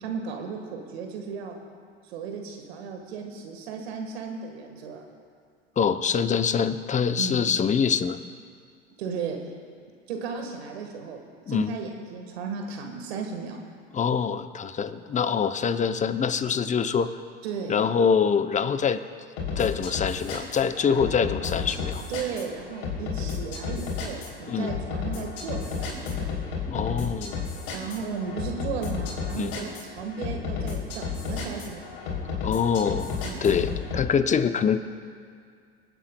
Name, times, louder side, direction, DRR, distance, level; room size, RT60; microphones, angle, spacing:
voice 1, 0.0-1.6 2.0-5.0 7.2-7.5 9.0-9.5 10.1-13.6 17.4-17.8 20.9-21.0 22.1-26.3 27.7-31.9 33.2-33.6, right 5 dB, 75° right, 3 dB, 1.6 m, -35 dB
voice 2, 5.8-8.2 11.5-11.7 13.9-17.1 17.7-19.0 19.6-22.0 24.5-24.7 26.7-27.5 29.4-29.5 32.4-34.8, left 6 dB, 25° left, 10 dB, 0.7 m, -25 dB
sound 1, 19.4-34.1, left 5 dB, 65° left, 3.3 m, -32 dB
25.5 x 9.0 x 2.3 m, 2.2 s
hypercardioid pair, 75°, 32 cm